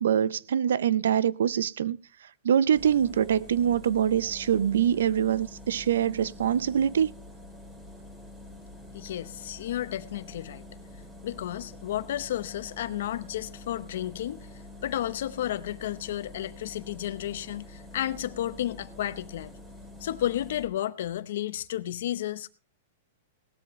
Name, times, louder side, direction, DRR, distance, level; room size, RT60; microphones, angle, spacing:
voice 1, 0.0-2.0 2.4-7.1, right 9 dB, 85° right, 0.5 m, -24 dB
sound 1, 2.7-20.7, left 1 dB, 10° right, 3.0 m, -46 dB
voice 2, 8.9-10.6 11.2-14.5 14.8-19.5 20.0-22.5, left 12 dB, 70° left, 0.8 m, -32 dB
17.5 x 13.5 x 3.1 m
hypercardioid pair, 150°, 0 cm